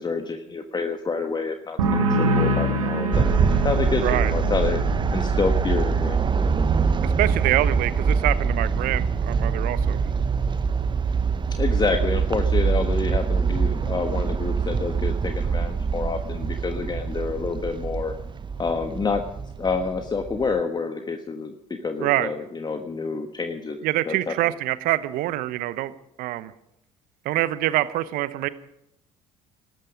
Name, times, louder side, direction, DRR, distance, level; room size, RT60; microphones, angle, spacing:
voice 1, 0.0-4.8 5.1-6.2 11.5-18.1 18.6-19.2 19.6-24.3, left 4 dB, 25° left, 6 dB, 1.4 m, -28 dB
sound 1, 1.8-9.2 9.5-10.1, right 1 dB, 80° right, 1.9 m, -28 dB
sound 2, 3.1-20.6, right 5 dB, 30° right, 1.0 m, -24 dB
voice 2, 4.0-4.3 7.0-10.0 22.0-22.3 23.8-25.9 26.2-26.5 27.2-28.5, right 15 dB, 60° right, 15 dB, 1.0 m, -25 dB
18.5 x 13.5 x 5.1 m, 0.81 s
hypercardioid pair, 55°, 17 cm